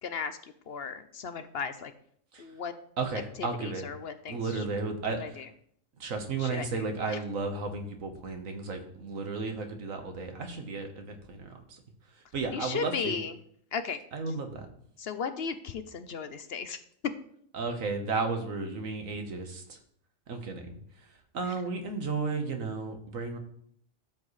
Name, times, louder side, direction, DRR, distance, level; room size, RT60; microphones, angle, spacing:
voice 1, 0.0-1.9 2.4-2.7 3.6-4.4 5.2-5.4 6.4-6.7 7.1-7.2 12.5-13.3 13.7-14.0 15.0-16.8, left 6 dB, 60° left, 10 dB, 0.8 m, -35 dB
voice 2, 3.0-3.9 4.3-5.4 6.0-11.8 12.1-13.2 14.1-14.7 17.5-19.8 20.3-23.4, right 4 dB, 85° right, 5 dB, 1.7 m, -34 dB
12.5 x 7.4 x 3.2 m, 0.65 s
omnidirectional pair, 1.4 m